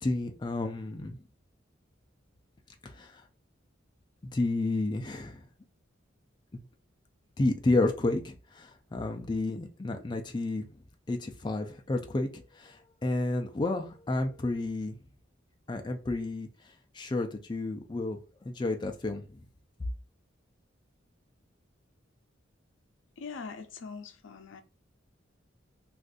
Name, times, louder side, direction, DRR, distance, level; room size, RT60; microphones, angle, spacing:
voice 1, 0.0-1.2 2.8-3.2 4.3-5.5 6.5-6.7 7.4-10.7 11.1-15.0 15.7-16.5 16.9-18.2 18.5-19.4, left 2 dB, 25° left, 0.4 m, -31 dB
voice 2, 23.2-24.6, left 5 dB, 80° left, 0.5 m, -42 dB
2.5 x 2.5 x 3.7 m
head